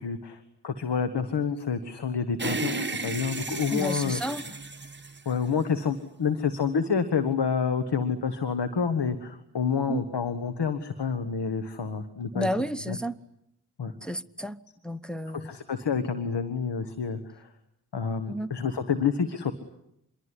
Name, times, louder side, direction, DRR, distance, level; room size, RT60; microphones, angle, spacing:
voice 1, 0.0-4.2 4.5-4.6 5.2-12.5 12.9-13.0 13.8-13.9 15.3-17.5 17.9-19.5, left 6 dB, 90° left, 1.6 m, -28 dB
sound 1, 2.4-5.9, right 3 dB, 25° right, 1.4 m, -34 dB
voice 2, 3.7-4.4 9.9-10.0 12.3-13.1 14.0-14.6 14.8-15.5 18.3-18.5, equal, ahead, 1.1 m, -31 dB
27.0 x 22.5 x 9.9 m
cardioid pair, 40°, 40 cm